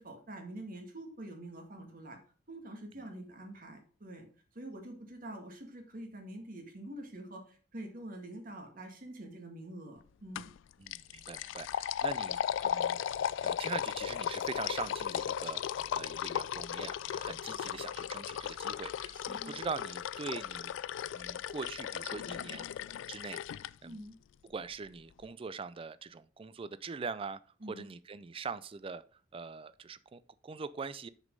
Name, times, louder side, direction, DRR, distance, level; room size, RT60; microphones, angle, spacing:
voice 1, 0.0-2.2 2.5-4.3 4.5-10.5 19.1-19.6 23.8-24.2 27.6-27.9, right 1 dB, 50° right, 1.9 m, -46 dB
sound 1, 10.4-10.6 10.9-23.7, left 9 dB, 75° left, 0.3 m, -36 dB
voice 2, 10.8-13.0 13.4-20.7 21.1-22.7 23.1-24.0 24.4-27.4 27.7-31.1, right 5 dB, 30° right, 0.4 m, -42 dB
6.5 x 5.2 x 5.3 m
head